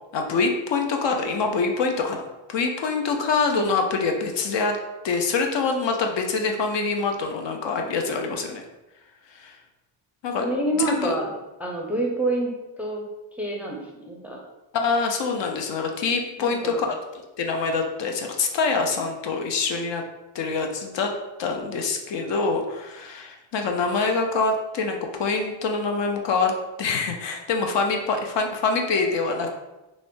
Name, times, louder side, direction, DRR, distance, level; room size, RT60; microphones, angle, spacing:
voice 1, 0.1-2.2 2.5-4.8 5.0-8.6 9.3-9.6 10.2-10.5 10.7-11.2 14.7-20.0 20.3-21.1 21.4-29.5, left 4 dB, 65° left, 3 dB, 0.6 m, -25 dB
voice 2, 10.4-11.3 11.6-13.0 13.3-14.4 16.4-16.8, right 2 dB, 5° right, -2 dB, 0.4 m, -27 dB
2.5 x 2.4 x 3.5 m, 1.0 s
cardioid pair, 100°, 48 cm